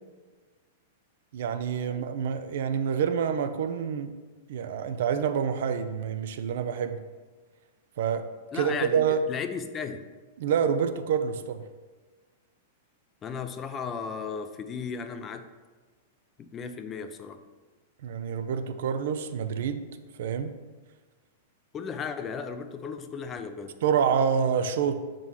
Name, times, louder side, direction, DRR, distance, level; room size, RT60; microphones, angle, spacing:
voice 1, 1.3-4.1 4.5-7.0 8.0-8.3 8.5-9.2 10.4-11.7 18.0-19.8 20.2-20.5 23.8-25.0, right 7 dB, 65° right, 10 dB, 0.4 m, -27 dB
voice 2, 8.5-10.1 13.2-15.4 16.4-17.4 21.7-23.8, left 6 dB, 25° left, 9 dB, 0.5 m, -35 dB
4.8 x 3.8 x 5.6 m, 1.3 s
hypercardioid pair, 100°, 0 cm